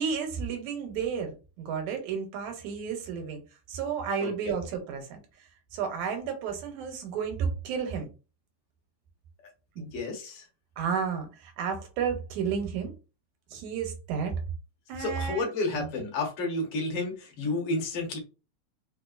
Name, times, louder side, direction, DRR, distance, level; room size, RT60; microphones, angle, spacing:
voice 1, 0.0-3.4 3.7-5.2 5.7-8.1 9.8-9.9 10.8-12.9 13.5-14.3 14.9-15.5 15.7-15.9, right 6 dB, 85° right, 2.2 m, -32 dB
voice 2, 4.2-4.5 9.8-10.5 15.0-18.2, left 2 dB, 60° left, 1.8 m, -31 dB
4.8 x 2.3 x 2.4 m
omnidirectional pair, 3.3 m